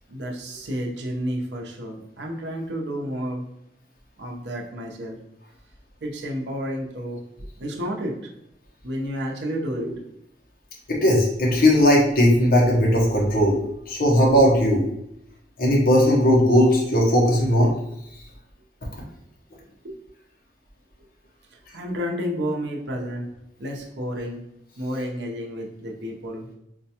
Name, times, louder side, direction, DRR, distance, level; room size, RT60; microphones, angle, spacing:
voice 1, 0.1-3.4 4.2-5.2 6.0-7.2 7.6-8.2 8.8-10.0 19.8-20.0 21.5-23.3 23.6-24.4 24.8-26.5, equal, 80° right, 0 dB, 0.7 m, -30 dB
voice 2, 10.9-13.6 13.9-14.8 15.6-17.7, equal, 55° left, -2 dB, 0.8 m, -18 dB
4.3 x 2.2 x 2.8 m, 0.78 s
head